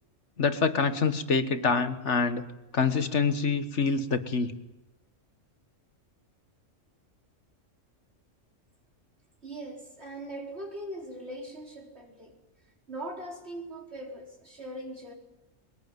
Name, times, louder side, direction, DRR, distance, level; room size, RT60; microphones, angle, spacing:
voice 1, 0.4-2.4 2.7-4.5, left 5 dB, 65° left, 9 dB, 1.7 m, -26 dB
voice 2, 9.4-12.4 12.9-15.1, right 1 dB, 55° right, 1 dB, 4.4 m, -40 dB
21.5 x 20.5 x 9.3 m, 0.96 s
omnidirectional pair, 1.3 m